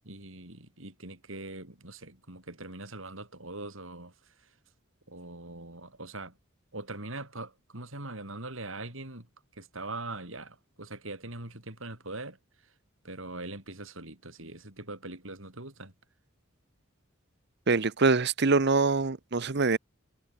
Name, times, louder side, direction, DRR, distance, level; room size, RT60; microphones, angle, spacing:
voice 1, 0.0-4.1 5.1-6.3 6.7-9.3 9.6-12.4 13.0-15.9, right 2 dB, 70° right, 6.1 m, -42 dB
voice 2, 17.7-19.8, right 4 dB, 55° right, 0.9 m, -24 dB
head